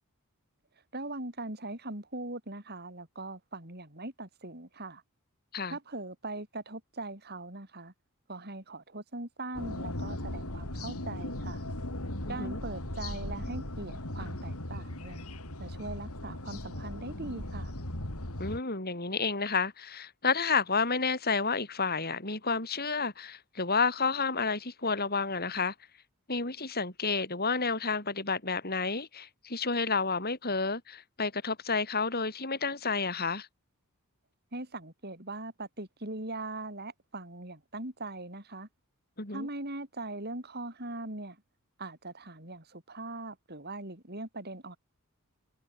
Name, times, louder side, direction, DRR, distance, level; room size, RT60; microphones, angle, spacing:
voice 1, 0.9-5.0 5.7-7.9 8.3-11.6 12.3-15.2 15.6-17.7 34.5-38.7 39.3-41.4 41.8-44.8, right 2 dB, 45° right, 7.5 m, -40 dB
sound 1, 9.5-18.6, left 1 dB, 80° left, 4.3 m, -38 dB
voice 2, 12.2-12.6 18.4-25.7 26.3-33.5 39.2-39.5, left 4 dB, 45° left, 7.0 m, -30 dB
head